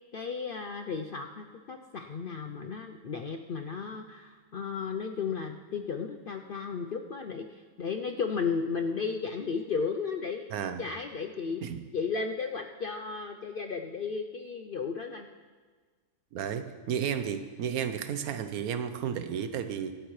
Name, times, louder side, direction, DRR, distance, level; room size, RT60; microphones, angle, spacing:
voice 1, 0.1-11.6 11.9-15.3, left 5 dB, 65° left, 5 dB, 0.5 m, -34 dB
voice 2, 10.5-10.8 11.6-11.8 16.3-19.9, right 8 dB, 85° right, 9 dB, 1.2 m, -32 dB
23.5 x 8.1 x 3.2 m, 1.5 s
omnidirectional pair, 1.5 m